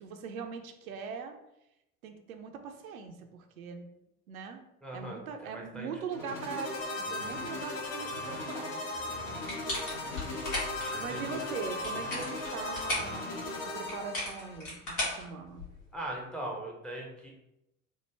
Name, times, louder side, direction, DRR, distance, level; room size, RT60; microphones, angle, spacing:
voice 1, 0.0-1.4 2.0-3.9 4.3-4.6 4.9-8.8 11.0-15.7, right 5 dB, 75° right, 5 dB, 0.5 m, -41 dB
voice 2, 4.8-5.9 6.2-6.3 10.7-11.3 15.9-17.3, right 1 dB, ahead, -1 dB, 0.5 m, -40 dB
sound 1, 6.1-14.6, left 2 dB, 65° left, 1.2 m, -37 dB
sound 2, 9.5-10.9 11.7-13.2 13.9-15.9, left 1 dB, 85° left, 1.4 m, -36 dB
3.2 x 2.1 x 3.1 m, 0.86 s
figure-of-eight pair, 70°, 43 cm